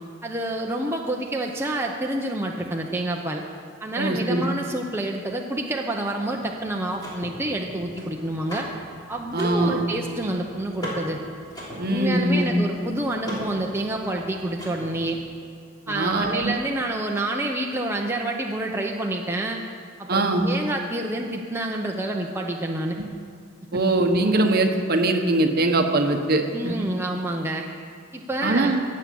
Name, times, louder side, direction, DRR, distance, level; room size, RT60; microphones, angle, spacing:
voice 1, 0.2-3.4 3.8-8.7 9.1-11.2 11.9-15.2 15.9-19.6 20.0-23.0 23.7-23.8 26.5-27.7 28.1-28.8, right 1 dB, 10° right, 0 dB, 0.7 m, -28 dB
voice 2, 4.0-4.4 9.3-9.9 11.8-12.6 15.9-16.5 20.1-20.4 23.7-26.7 28.4-28.8, right 2 dB, 50° right, 4 dB, 1.2 m, -22 dB
Car / Mechanisms, 6.3-15.2, equal, 20° left, 3.4 m, -39 dB
17.0 x 7.5 x 7.0 m, 2.3 s
head